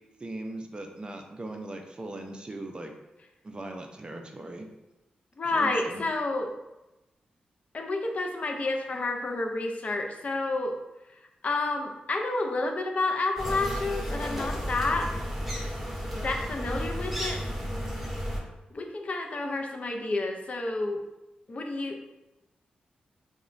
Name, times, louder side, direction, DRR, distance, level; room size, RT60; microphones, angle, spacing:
voice 1, 0.2-2.9 3.4-4.7 5.5-6.0, right 2 dB, 35° right, 3 dB, 0.4 m, -39 dB
voice 2, 5.4-6.5 7.7-10.7 11.4-15.1 16.1-17.4 18.7-21.0 21.5-22.1, left 2 dB, 50° left, 3 dB, 0.4 m, -30 dB
sound 1, 13.4-18.4, equal, 5° right, 0.7 m, -33 dB
2.9 x 2.1 x 2.4 m, 0.98 s
cardioid pair, 55°, 3 cm